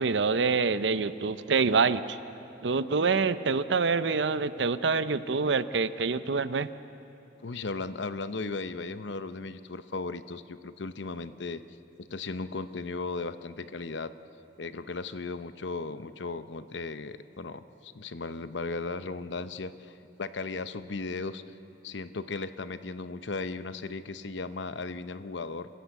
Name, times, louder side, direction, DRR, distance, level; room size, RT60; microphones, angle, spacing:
voice 1, 0.0-2.2 2.6-6.7, right 4 dB, 70° right, 14 dB, 0.7 m, -26 dB
voice 2, 7.4-11.6 12.0-14.1 14.6-21.4 21.8-25.7, left 3 dB, 75° left, 12 dB, 0.8 m, -36 dB
27.5 x 15.5 x 8.2 m, 2.8 s
head